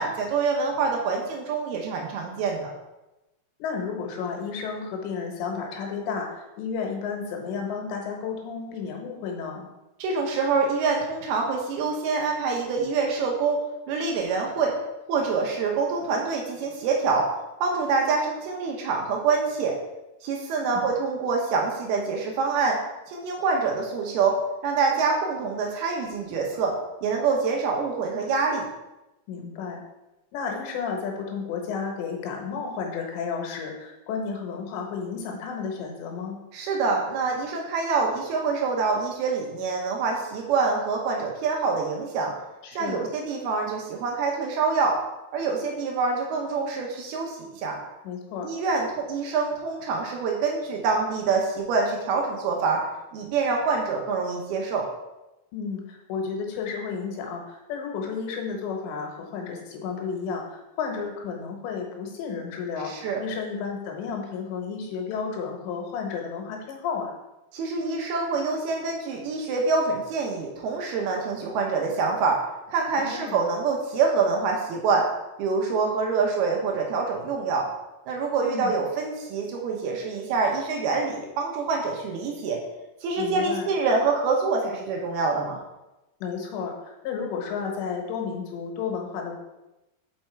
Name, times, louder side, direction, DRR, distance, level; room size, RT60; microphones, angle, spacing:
voice 1, 0.0-2.7 10.0-13.6 13.9-14.7 15.1-17.3 17.6-19.7 20.2-22.8 23.1-24.4 24.6-26.7 27.0-28.7 36.5-42.3 42.7-45.0 45.3-47.8 48.4-52.9 53.1-54.9 62.8-63.2 67.5-72.4 72.7-75.1 75.4-77.7 78.1-82.6 83.0-85.6, right 4 dB, 75° right, 0 dB, 2.7 m, -26 dB
voice 2, 3.6-9.7 20.6-20.9 29.3-29.8 30.3-36.4 42.6-43.0 48.0-48.5 55.5-67.1 73.0-73.4 78.4-78.8 83.2-83.7 86.2-89.4, left 5 dB, 90° left, 1 dB, 3.4 m, -32 dB
5.8 x 5.5 x 4.4 m, 0.98 s
omnidirectional pair, 5.0 m